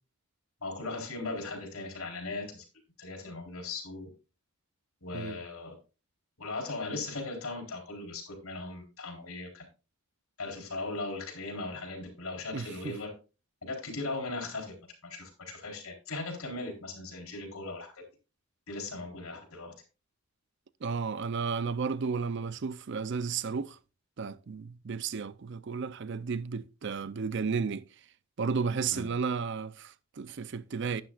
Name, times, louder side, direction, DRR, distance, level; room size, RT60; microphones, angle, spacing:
voice 1, 0.6-2.6 3.0-4.1 5.0-5.7 6.4-9.7 10.4-13.1 13.6-14.7 15.0-18.0 18.7-19.7 28.9-29.1, left 3 dB, 75° left, 3.9 m, -38 dB
voice 2, 12.5-12.9 20.8-23.8 24.2-27.8 28.4-31.0, right 5 dB, 50° right, 0.5 m, -33 dB
12.0 x 10.0 x 2.4 m
head